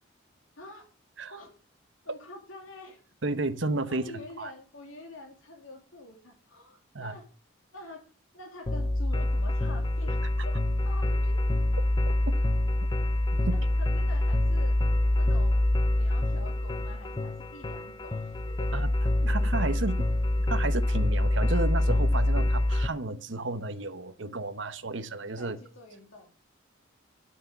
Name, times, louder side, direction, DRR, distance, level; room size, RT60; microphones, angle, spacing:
voice 1, 2.0-3.0 3.9-7.3 7.7-8.1 8.3-11.4 13.5-14.8 15.2-18.7 19.8-19.9 25.4-26.3, left 2 dB, 85° left, 2.6 m, -46 dB
voice 2, 3.2-4.5 6.9-7.1 12.3-12.4 13.5-13.6 18.7-18.9 19.2-20.1 20.5-25.6, right 3 dB, 65° right, 0.9 m, -32 dB
sound 1, 8.7-22.9, left 1 dB, 20° left, 0.5 m, -26 dB
9.4 x 6.5 x 6.6 m
head